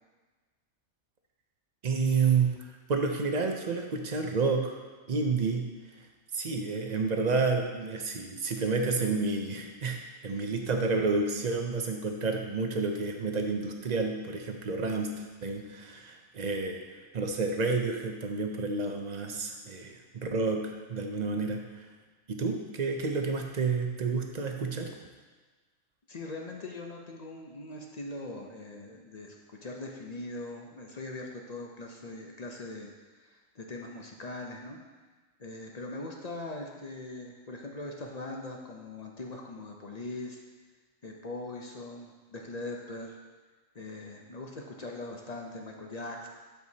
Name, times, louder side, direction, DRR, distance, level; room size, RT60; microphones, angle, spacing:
voice 1, 1.8-2.5 2.9-4.8 5.1-5.6 6.3-15.1 15.4-16.8 17.1-21.8 22.3-24.9, right 4 dB, 45° right, 3 dB, 0.6 m, -30 dB
voice 2, 26.1-34.8 35.4-40.4 41.0-43.2 43.7-46.3, left 2 dB, 40° left, 1 dB, 0.6 m, -41 dB
12.5 x 4.7 x 2.8 m, 1.3 s
omnidirectional pair, 1.4 m